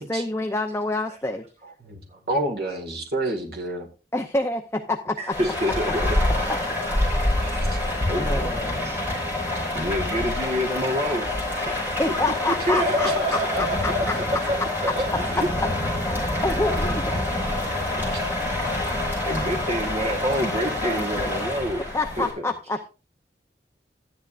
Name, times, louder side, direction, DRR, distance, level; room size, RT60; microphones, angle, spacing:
voice 1, 0.0-1.4 4.1-5.3 6.5-6.6 8.1-8.9 12.0-14.1 15.9-17.0 21.9-22.9, left 2 dB, 15° left, 3 dB, 0.7 m, -27 dB
voice 2, 2.3-3.9 5.4-5.5 6.6-6.8 7.1-7.9 12.6-13.1 15.1-15.2 17.2-17.5, right 2 dB, 60° right, 1 dB, 1.9 m, -31 dB
voice 3, 5.2-6.5 8.1-8.5 8.8-9.2 9.7-11.3 11.6-12.1 12.5-15.5 17.4-17.5 18.0-18.1 19.3-21.8 22.2-22.4, equal, 35° right, 2 dB, 1.4 m, -27 dB
Rain, 5.3-22.3, left 1 dB, 10° right, 5.4 m, -26 dB
13.5 x 10.5 x 2.5 m, 0.33 s
head